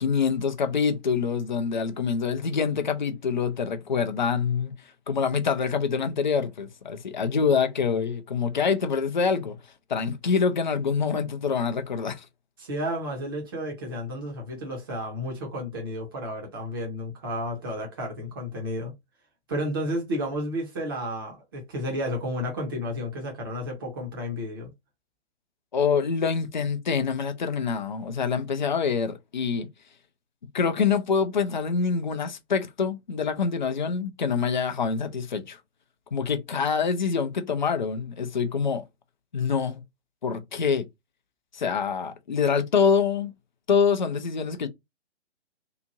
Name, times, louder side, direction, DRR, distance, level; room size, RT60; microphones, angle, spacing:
voice 1, 0.0-4.7 5.1-9.6 9.9-12.3 25.7-29.7 30.5-35.6 36.1-38.8 39.3-39.8 40.2-40.9 41.5-43.3 43.7-44.7, left 6 dB, 45° left, 0.5 m, -25 dB
voice 2, 12.6-18.9 19.5-24.7, equal, 20° right, 0.7 m, -32 dB
2.9 x 2.4 x 2.6 m
figure-of-eight pair, 135°, 34 cm